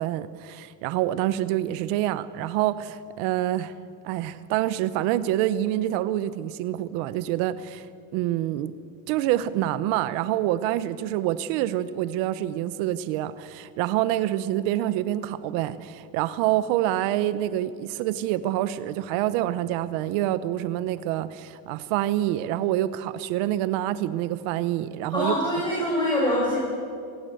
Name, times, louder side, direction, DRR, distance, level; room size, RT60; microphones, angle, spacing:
voice 1, 0.0-3.7 4.0-7.9 8.1-8.7 9.1-25.3, right 13 dB, 90° right, 15 dB, 1.0 m, -26 dB
voice 2, 25.1-26.6, left 1 dB, 10° left, -4 dB, 6.4 m, -24 dB
27.0 x 19.5 x 7.9 m, 2.3 s
cardioid pair, 130°, 46 cm